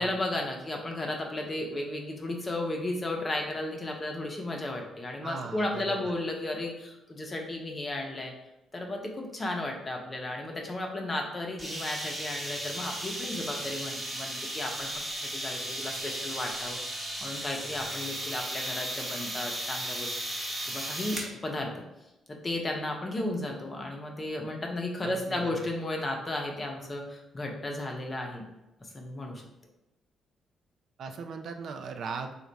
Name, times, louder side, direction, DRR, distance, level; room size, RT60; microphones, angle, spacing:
voice 1, 0.0-8.3 8.7-20.1 20.6-21.7 22.3-28.4 28.8-29.4, left 1 dB, 30° left, 2 dB, 0.8 m, -34 dB
voice 2, 5.2-6.1 25.0-25.6 31.0-32.3, right 5 dB, 65° right, 6 dB, 0.4 m, -38 dB
sound 1, 11.6-21.3, right 1 dB, 10° right, 1.0 m, -35 dB
3.3 x 2.4 x 3.9 m, 0.95 s
cardioid pair, 90°, 0 cm